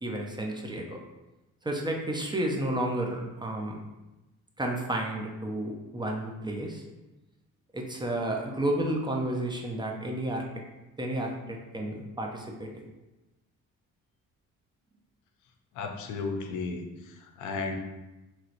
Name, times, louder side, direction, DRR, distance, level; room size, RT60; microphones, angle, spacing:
voice 1, 0.0-1.0 1.6-3.8 4.6-6.8 7.7-10.4 11.0-12.7, right 1 dB, 15° right, 0 dB, 0.5 m, -31 dB
voice 2, 15.7-17.8, left 4 dB, 80° left, 4 dB, 0.5 m, -34 dB
3.0 x 2.8 x 2.5 m, 1.0 s
cardioid pair, 90°, 30 cm